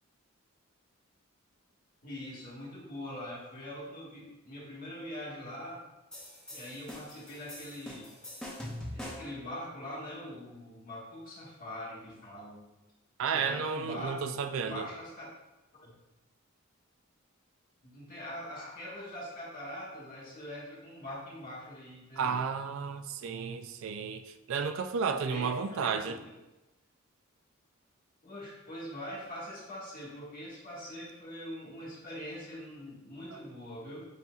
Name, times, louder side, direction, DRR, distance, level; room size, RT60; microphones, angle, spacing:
voice 1, 2.0-5.8 6.5-8.1 8.9-12.7 13.2-15.3 15.8-15.9 17.8-22.4 25.3-26.4 28.2-34.0, left 1 dB, 40° left, -6 dB, 1.4 m, -43 dB
sound 1, 6.1-9.4, left 1 dB, 5° left, 0.6 m, -43 dB
voice 2, 13.2-14.9 22.2-26.2 33.3-33.4, right 6 dB, 65° right, 8 dB, 0.3 m, -32 dB
6.9 x 2.7 x 2.3 m, 1.0 s
head